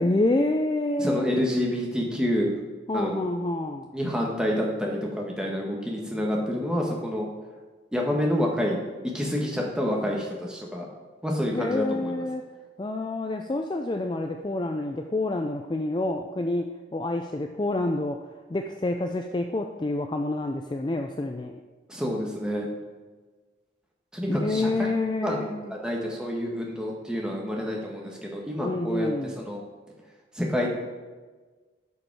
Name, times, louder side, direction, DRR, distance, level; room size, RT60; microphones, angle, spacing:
voice 1, 0.0-1.3 2.9-3.9 11.5-12.4 12.8-21.6 24.3-25.8 28.6-29.4, left 2 dB, 25° left, 5 dB, 0.4 m, -28 dB
voice 2, 1.0-2.6 2.9-3.2 3.9-7.3 7.9-8.8 9.1-10.9 11.2-12.1 21.9-22.7 24.1-24.9 25.2-29.6 30.3-30.7, equal, 5° right, -2 dB, 1.4 m, -28 dB
11.5 x 5.1 x 4.8 m, 1.3 s
head